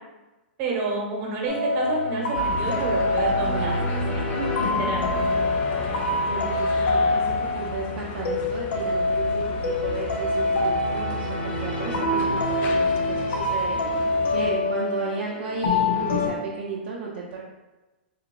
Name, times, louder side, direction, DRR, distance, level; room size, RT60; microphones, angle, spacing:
voice 1, 0.6-5.1, right 3 dB, 40° right, -1 dB, 1.1 m, -30 dB
sound 1, 1.5-16.3, left 2 dB, 75° left, 0.7 m, -25 dB
sound 2, 2.4-14.5, left 4 dB, 35° left, 0.4 m, -36 dB
voice 2, 4.4-5.4 5.8-17.4, right 4 dB, 60° right, -3 dB, 0.5 m, -34 dB
3.3 x 2.3 x 3.8 m, 1.1 s
hypercardioid pair, 120°, 6 cm